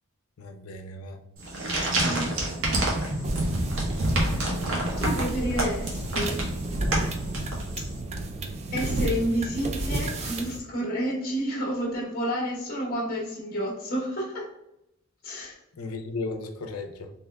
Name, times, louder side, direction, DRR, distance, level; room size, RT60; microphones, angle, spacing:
voice 1, 0.4-1.2 15.7-17.1, left 3 dB, 80° left, 4 dB, 0.5 m, -35 dB
sound 1, 1.4-7.9, right 1 dB, 65° right, 0.9 m, -28 dB
voice 2, 2.0-2.4 5.0-6.5 8.7-14.4 15.2-15.6, equal, 45° left, -4 dB, 0.9 m, -30 dB
sound 2, 3.2-10.6, right 2 dB, 30° right, 0.3 m, -31 dB
3.5 x 2.9 x 2.2 m, 0.84 s
head